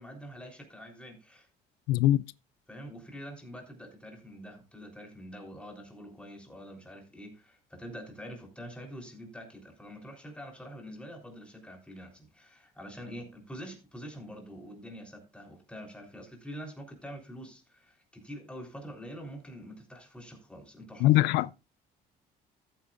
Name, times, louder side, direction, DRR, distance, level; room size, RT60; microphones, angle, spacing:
voice 1, 0.0-1.5 2.7-21.3, equal, 5° left, 3.7 m, -45 dB
voice 2, 1.9-2.2 21.0-21.6, left 15 dB, 85° left, 0.4 m, -22 dB
14.0 x 8.7 x 2.5 m
cardioid pair, 110°, 17 cm